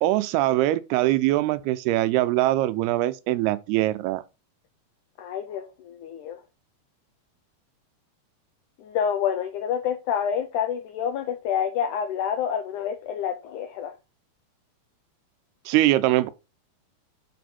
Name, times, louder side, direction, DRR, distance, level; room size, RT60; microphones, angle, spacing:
voice 1, 0.0-4.2 15.7-16.3, right 16 dB, 85° right, 2.6 m, -22 dB
voice 2, 5.2-6.4 8.8-13.9, left 8 dB, 80° left, 1.8 m, -28 dB
9.3 x 4.1 x 4.3 m
omnidirectional pair, 4.5 m